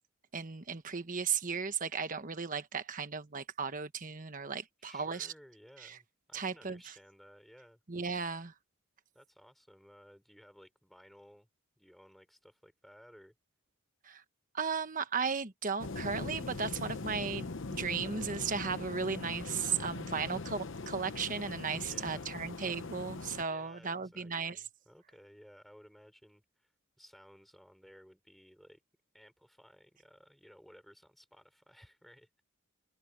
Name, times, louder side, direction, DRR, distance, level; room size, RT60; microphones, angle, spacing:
voice 1, 0.3-5.3 5.8-6.0 6.3-6.9 7.9-8.5 14.0-14.2 14.5-24.6, right 5 dB, 40° right, 1.2 m, -36 dB
voice 2, 4.8-7.8 9.1-11.5 11.8-13.3 21.8-22.3 23.5-26.7 27.0-28.8 29.1-32.4, equal, ahead, 3.8 m, -58 dB
sound 1, 15.8-23.4, left 3 dB, 60° left, 0.9 m, -41 dB
head